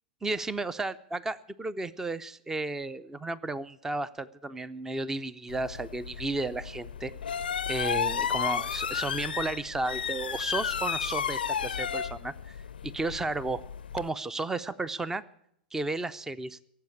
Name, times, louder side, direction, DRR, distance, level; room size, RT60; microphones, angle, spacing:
voice 1, 0.2-7.1 7.7-12.6 12.8-13.6 13.9-15.2 15.7-16.6, right 2 dB, 10° right, 19 dB, 0.5 m, -33 dB
sound 1, 5.5-14.1, left 7 dB, 75° left, 0.5 m, -33 dB
17.5 x 7.7 x 8.6 m, 0.71 s
figure-of-eight pair, 105°, 5 cm